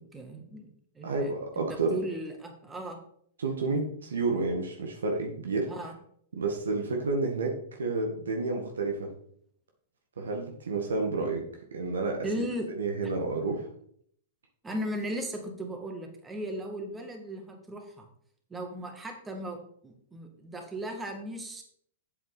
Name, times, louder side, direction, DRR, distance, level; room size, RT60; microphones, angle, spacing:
voice 1, 0.1-0.7 0.9-1.3 1.6-3.0 5.7-5.9 12.2-12.7 14.6-18.1 18.5-21.6, right 1 dB, 15° right, 3 dB, 2.0 m, -37 dB
voice 2, 1.0-2.0 3.4-5.7 6.3-9.1 10.2-11.4 11.7-12.3 12.8-13.7, right 3 dB, 85° right, 2 dB, 1.7 m, -30 dB
8.0 x 7.7 x 4.1 m, 0.64 s
hypercardioid pair, 120°, 0 cm